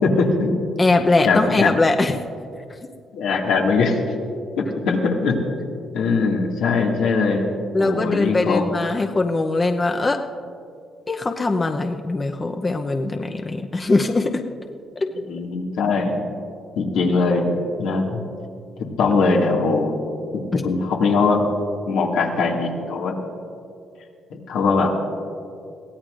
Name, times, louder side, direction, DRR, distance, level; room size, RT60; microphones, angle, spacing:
voice 1, 0.0-0.6 1.2-1.7 3.1-4.0 4.5-5.7 5.9-7.5 7.8-8.7 15.2-16.2 16.8-17.5 17.8-18.2 19.0-20.0 20.3-21.4 21.9-23.1 24.3-24.9, left 4 dB, 90° left, -1 dB, 2.1 m, -21 dB
voice 2, 0.8-2.2 7.7-10.2 11.1-14.4 15.0-15.2 20.5-20.6, left 3 dB, 30° left, 4 dB, 0.7 m, -21 dB
23.0 x 16.5 x 2.5 m, 2.4 s
cardioid pair, 90°, 0 cm